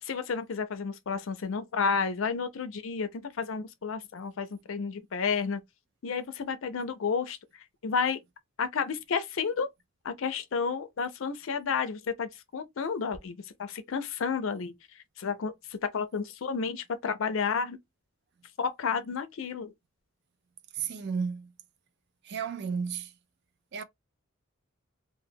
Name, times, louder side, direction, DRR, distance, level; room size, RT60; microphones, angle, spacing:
voice 1, 0.0-5.6 6.0-8.2 8.6-9.7 10.0-17.8 18.6-19.7, left 5 dB, 65° left, 0.4 m, -31 dB
voice 2, 20.7-21.5 22.2-23.1 23.7-23.8, right 6 dB, 55° right, 0.4 m, -33 dB
2.2 x 2.1 x 3.3 m
head